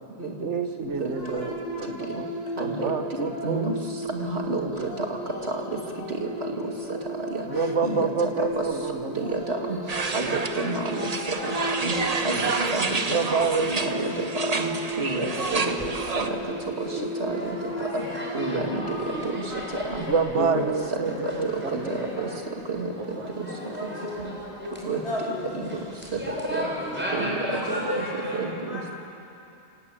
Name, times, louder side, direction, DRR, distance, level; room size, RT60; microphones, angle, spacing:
voice 1, 0.4-1.5 1.8-2.3 2.6-3.6 4.6-4.9 7.5-9.1 13.1-13.9 14.2-14.3 15.2-15.3 15.8-15.9 20.1-21.8, right 5 dB, 90° right, 7 dB, 1.6 m, -27 dB
sound 1, 0.8-20.3, right 1 dB, 40° left, 4.1 m, -35 dB
voice 2, 2.6-2.9 3.4-3.7 4.1-5.1 6.2-6.3 7.3-7.4 7.8-8.1 8.6-8.7 9.2-9.8 10.1-11.1 11.8-11.9 12.2-12.4 12.7-12.9 13.8-14.1 14.3-14.7 15.0-15.2 15.5-15.7 16.2-16.3 17.2-17.6 18.3-18.8 19.8-20.1 20.3-20.6 21.7-21.8 22.2-22.3 22.7-22.9 23.4-23.5 24.2-24.3 24.8-25.0 25.5-25.7 26.5-26.7 27.1-27.6 28.0-28.1 28.4-28.8, right 2 dB, 65° right, 1 dB, 2.6 m, -29 dB
voice 3, 8.4-8.8 10.5-11.6 12.6-12.7 13.9-14.0 14.4-14.6 17.9-18.1 19.5-19.6 22.2-22.3 23.2-24.2 24.6-24.7 25.0-25.4 27.5-28.4 28.7-28.9, left 1 dB, 65° left, -4 dB, 6.5 m, -36 dB
sound 2, 9.9-16.3, right 4 dB, 35° right, 1.1 m, -29 dB
sound 3, 15.3-28.4, equal, 10° right, 5.3 m, -37 dB
28.0 x 18.5 x 8.6 m, 2.8 s
omnidirectional pair, 1.2 m